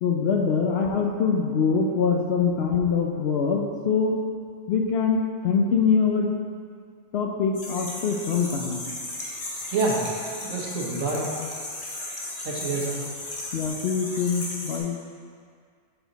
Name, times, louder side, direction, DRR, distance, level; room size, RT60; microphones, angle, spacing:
voice 1, 0.0-4.2 4.7-6.3 7.1-8.9 13.5-15.0, left 5 dB, 65° left, 2 dB, 0.7 m, -24 dB
sound 1, 7.5-14.8, left 2 dB, 45° left, 1.0 m, -35 dB
voice 2, 9.7-10.0 10.3-11.3 12.4-13.0, right 3 dB, 85° right, -4 dB, 1.4 m, -27 dB
6.8 x 4.4 x 3.9 m, 2.1 s
omnidirectional pair, 1.3 m